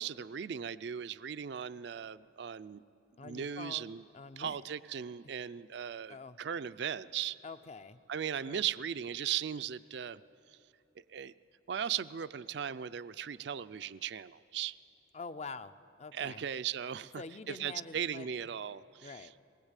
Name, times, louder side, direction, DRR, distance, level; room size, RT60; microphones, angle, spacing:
voice 1, 0.0-2.8 3.2-4.0 4.4-7.4 8.1-10.2 10.5-10.6 11.1-11.3 11.7-14.8 16.1-19.1, right 8 dB, 60° right, 14 dB, 0.4 m, -38 dB
voice 2, 3.2-4.6 6.1-6.4 7.4-8.0 8.4-8.6 15.1-16.5 17.2-18.5 19.0-19.3, left 4 dB, 35° left, 12 dB, 0.5 m, -46 dB
21.0 x 19.0 x 8.2 m, 2.7 s
head